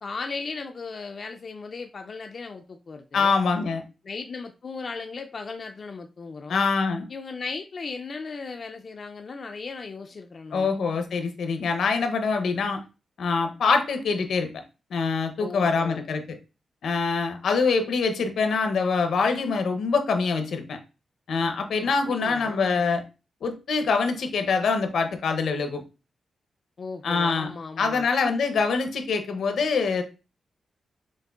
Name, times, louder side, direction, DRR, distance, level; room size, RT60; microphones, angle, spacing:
voice 1, 0.0-3.4 4.0-6.6 7.1-10.7 15.4-16.1 22.1-22.8 26.8-28.1, left 4 dB, 45° left, 0.3 m, -37 dB
voice 2, 3.1-3.8 6.5-7.1 10.5-12.8 13.2-14.5 14.9-16.4 16.8-20.8 21.3-23.0 23.4-25.8 27.0-27.5 27.8-30.0, left 4 dB, 80° left, 0.7 m, -24 dB
6.3 x 2.5 x 2.4 m
wide cardioid pair, 135°, 0 cm